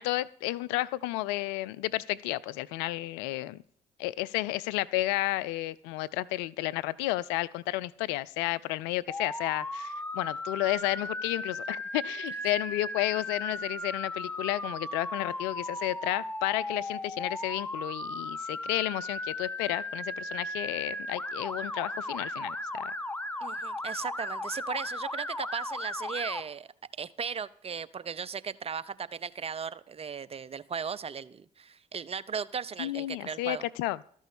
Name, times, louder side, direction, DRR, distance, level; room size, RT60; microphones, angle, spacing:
voice 1, 0.0-3.6 4.0-22.9 32.8-34.0, left 17 dB, 75° left, 17 dB, 0.4 m, -32 dB
Motor vehicle (road) / Siren, 9.1-26.4, left 1 dB, 10° left, 1.0 m, -36 dB
voice 2, 23.4-26.7 27.0-33.6, right 6 dB, 35° right, 19 dB, 0.6 m, -37 dB
13.0 x 6.3 x 7.0 m, 0.62 s
hypercardioid pair, 50°, 18 cm